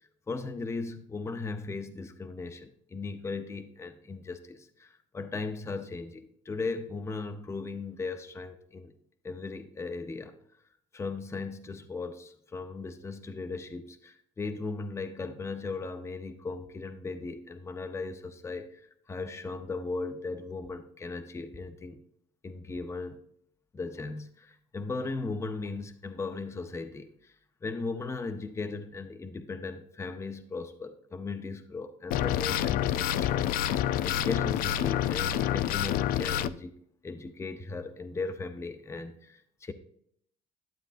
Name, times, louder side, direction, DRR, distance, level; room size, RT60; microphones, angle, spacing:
voice 1, 0.3-8.9 9.2-10.4 10.9-18.8 19.1-22.0 22.4-23.2 23.7-27.3 27.6-36.7 37.0-39.7, left 3 dB, 20° left, 8 dB, 0.7 m, -37 dB
sound 1, 32.1-36.5, left 11 dB, 75° left, 0.4 m, -28 dB
12.0 x 7.7 x 2.5 m, 0.68 s
cardioid pair, 105°, 15 cm